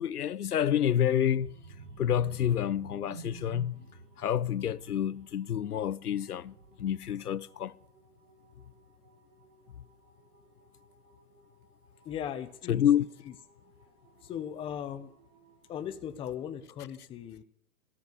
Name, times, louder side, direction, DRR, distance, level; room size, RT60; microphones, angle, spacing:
voice 1, 0.0-1.5 2.0-3.8 4.2-7.7 12.7-13.1, left 10 dB, 75° left, 0.8 m, -28 dB
sound 1, 0.7-15.9, right 4 dB, 35° right, 4.6 m, -64 dB
sound 2, 1.3-7.0 7.4-7.7 8.0-8.1, right 4 dB, 85° right, 2.5 m, -49 dB
voice 2, 12.0-12.9 13.3-13.4 14.2-15.1 15.7-17.4, left 9 dB, 10° left, 0.9 m, -38 dB
14.0 x 13.0 x 6.9 m
hypercardioid pair, 135°, 45 cm